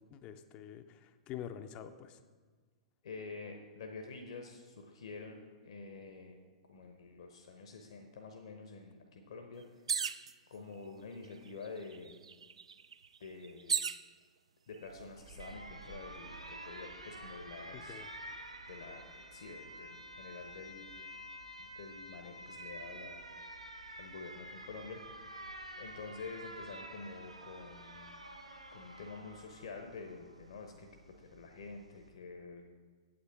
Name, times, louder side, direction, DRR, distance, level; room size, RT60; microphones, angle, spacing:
voice 1, 0.1-2.2 17.7-18.1, left 10 dB, 30° left, 9 dB, 0.5 m, -46 dB
voice 2, 3.0-6.4 6.7-9.6 10.5-12.2 13.2-13.8 14.7-18.0 18.7-20.9 21.6-23.2 24.0-25.0 25.8-28.2 28.7-30.9 31.2-32.7, left 4 dB, 60° left, 4 dB, 0.9 m, -48 dB
sound 1, 9.9-10.3 11.2-11.3 11.6-14.0 14.8-15.3, right 6 dB, 65° right, 0.4 m, -36 dB
Alarm, 14.9-32.1, right 1 dB, 85° right, 0.9 m, -49 dB
8.7 x 8.1 x 4.6 m, 1.5 s
figure-of-eight pair, 105°, 3 cm